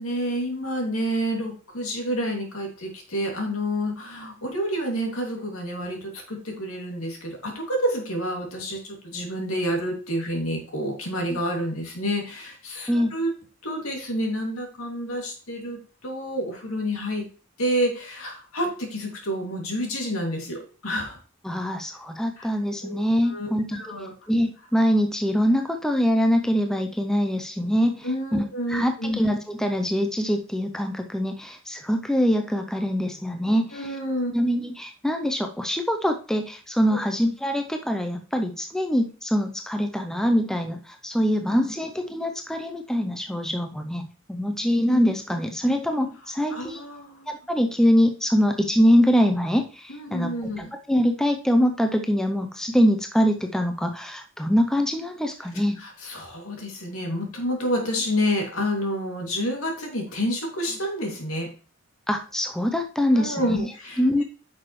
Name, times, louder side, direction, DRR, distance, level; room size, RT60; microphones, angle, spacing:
voice 1, 0.0-13.3 13.6-17.2 17.6-21.2 22.4-22.5 22.8-24.1 28.0-29.2 33.5-34.3 36.9-37.0 46.5-47.3 49.9-50.7 55.8-61.5 63.1-64.0, equal, 80° left, 1 dB, 2.4 m, -29 dB
voice 2, 21.4-23.9 24.3-33.8 34.3-46.8 47.3-50.3 50.7-55.8 62.1-63.7 64.0-64.2, equal, 5° left, 5 dB, 0.5 m, -24 dB
9.2 x 6.1 x 3.1 m, 0.38 s
head